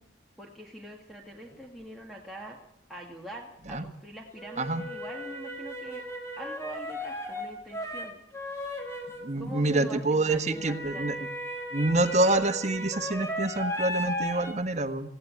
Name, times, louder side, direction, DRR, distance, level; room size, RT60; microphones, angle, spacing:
voice 1, 0.4-2.6 2.9-6.0 6.4-8.2 9.4-11.3, right 1 dB, ahead, -2 dB, 2.1 m, -44 dB
sound 1, 1.5-1.6 4.4-9.4 10.5-14.5, equal, 15° left, 3.9 m, -36 dB
voice 2, 9.2-11.2 11.7-15.1, right 2 dB, 40° right, 9 dB, 1.4 m, -27 dB
18.0 x 16.5 x 9.6 m, 0.77 s
head